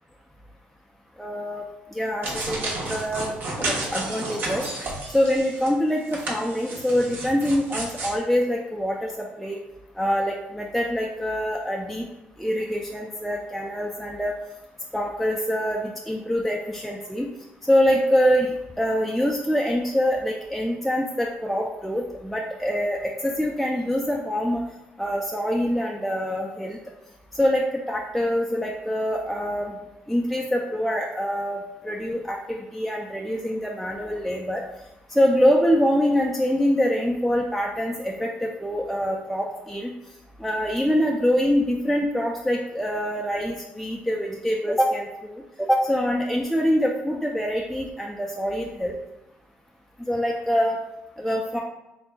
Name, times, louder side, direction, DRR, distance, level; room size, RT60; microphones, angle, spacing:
voice 1, 1.2-1.7 1.9-3.3 3.6-4.6 5.1-9.6 10.0-12.1 12.4-14.4 14.9-17.3 17.6-24.6 25.0-26.8 27.3-29.7 30.1-34.6 35.1-39.9 40.4-48.9 50.1-50.8 51.2-51.6, equal, ahead, -2 dB, 0.4 m, -25 dB
sound 1, 2.2-5.7 6.1-8.2, right 2 dB, 55° right, 1.1 m, -32 dB
4.3 x 3.5 x 2.2 m, 0.95 s
cardioid pair, 100°, 4 cm